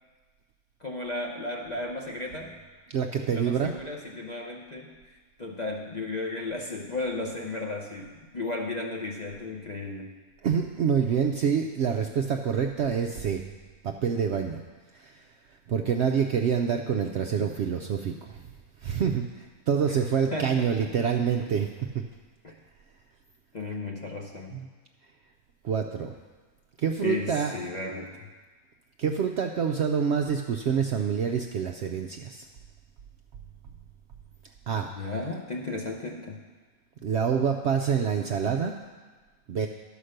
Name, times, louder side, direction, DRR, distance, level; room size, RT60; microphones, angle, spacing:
voice 1, 0.8-2.6 3.3-5.0 5.4-10.1 17.4-17.5 20.3-21.2 22.4-22.5 23.5-24.6 27.0-28.3 35.0-36.4, left 2 dB, 40° left, 0 dB, 0.6 m, -34 dB
voice 2, 2.9-3.7 10.4-13.4 13.8-14.6 14.9-15.2 15.7-18.4 18.8-21.7 24.5-24.7 25.6-26.1 26.8-27.5 29.0-32.5 34.7-34.9 37.0-38.7 39.5-39.7, right 7 dB, 65° right, 3 dB, 0.6 m, -26 dB
11.5 x 5.1 x 6.5 m, 1.4 s
omnidirectional pair, 1.6 m